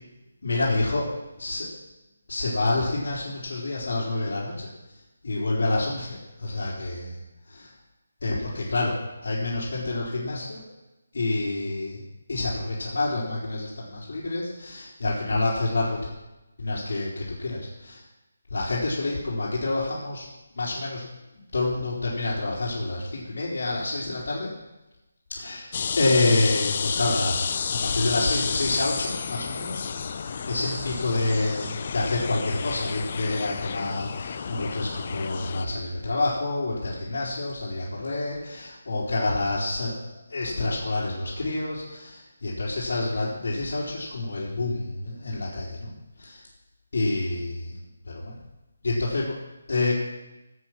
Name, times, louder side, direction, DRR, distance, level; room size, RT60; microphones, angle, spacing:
voice 1, 0.4-1.1 1.4-1.7 2.3-4.7 5.2-7.2 7.5-7.7 8.2-10.6 11.1-12.0 12.3-16.0 16.6-18.0 18.5-20.3 20.6-21.0 21.5-24.5 25.4-25.7 26.0-40.0 40.3-45.9 46.2-46.4 46.9-47.8 48.1-48.4 48.8-49.4 49.7-49.9, left 2 dB, 50° left, -9 dB, 3.9 m, -28 dB
sound 1, 25.7-35.7, left 6 dB, 30° left, 0.5 m, -31 dB
16.0 x 8.1 x 6.1 m, 1.0 s
hypercardioid pair, 175°, 0 cm